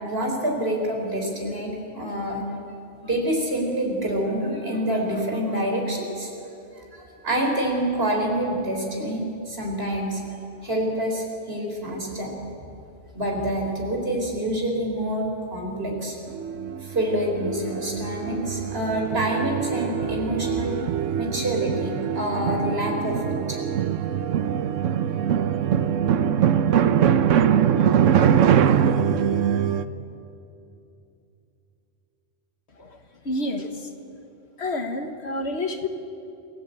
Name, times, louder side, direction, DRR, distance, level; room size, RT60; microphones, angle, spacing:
voice 1, 0.0-2.4 3.0-6.3 6.8-10.2 10.6-12.3 13.1-16.2 16.8-20.7 21.1-23.6, right 1 dB, 55° right, 1 dB, 4.6 m, -27 dB
sound 1, 16.3-29.9, right 8 dB, 90° right, 1.2 m, -23 dB
voice 2, 33.2-33.9 34.6-35.9, left 2 dB, 60° left, 5 dB, 1.8 m, -29 dB
28.0 x 17.5 x 8.5 m, 2.7 s
omnidirectional pair, 1.3 m